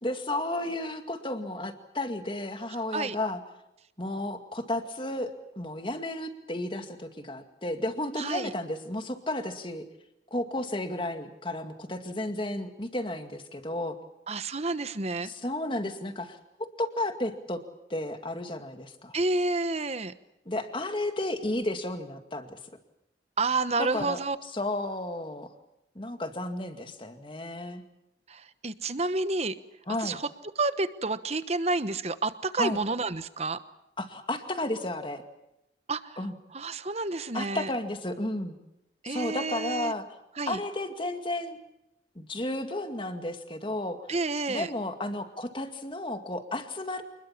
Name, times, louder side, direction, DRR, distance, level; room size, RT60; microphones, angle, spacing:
voice 1, 0.0-3.4 4.0-9.8 10.3-14.0 15.2-16.4 16.8-17.6 17.9-19.2 20.5-22.6 23.8-25.5 26.0-27.8 29.9-30.2 32.6-32.8 34.0-35.2 36.2-36.3 37.3-38.6 39.0-40.0 40.5-41.6 42.2-44.1 44.5-47.0, left 1 dB, 30° left, 7 dB, 2.1 m, -33 dB
voice 2, 8.2-8.5 14.3-15.3 19.1-20.1 23.4-24.4 28.3-29.5 30.0-30.3 30.6-33.6 35.9-36.2 36.5-37.7 39.0-39.9 40.4-40.6 44.1-44.7, right 3 dB, 35° right, 13 dB, 1.1 m, -29 dB
27.0 x 21.0 x 7.3 m, 0.86 s
head